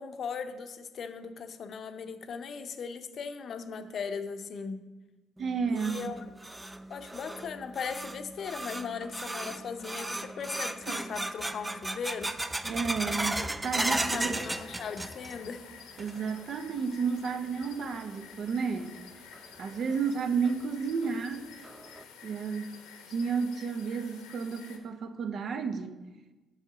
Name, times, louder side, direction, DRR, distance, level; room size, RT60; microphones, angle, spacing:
voice 1, 0.0-4.8 5.7-6.3 6.9-12.3 13.9-16.1, left 6 dB, 55° left, 0.6 m, -38 dB
sound 1, 5.4-15.5 15.8-16.4 16.8-16.9 17.6-17.7 19.3-19.4 19.9-20.0 20.4-20.5 21.0-21.1 21.6-22.0, right 1 dB, 15° right, 0.4 m, -35 dB
voice 2, 5.4-6.2 12.6-14.4 16.0-19.0 19.6-21.5 22.2-22.8 23.1-26.0, right 5 dB, 55° right, 0.6 m, -32 dB
sound 2, 13.6-24.8, left 7 dB, 85° left, 0.8 m, -51 dB
5.7 x 5.5 x 5.9 m
supercardioid pair, 65°, 0 cm